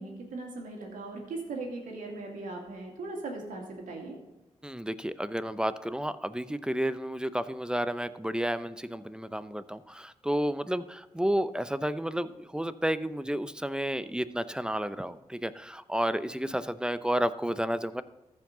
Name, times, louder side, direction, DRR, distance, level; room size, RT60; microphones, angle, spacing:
voice 1, 0.0-4.2, right 3 dB, 85° right, 1 dB, 2.2 m, -39 dB
voice 2, 4.6-18.0, equal, 5° right, 13 dB, 0.6 m, -31 dB
14.5 x 5.2 x 3.9 m, 1.1 s
supercardioid pair, 45°, 13 cm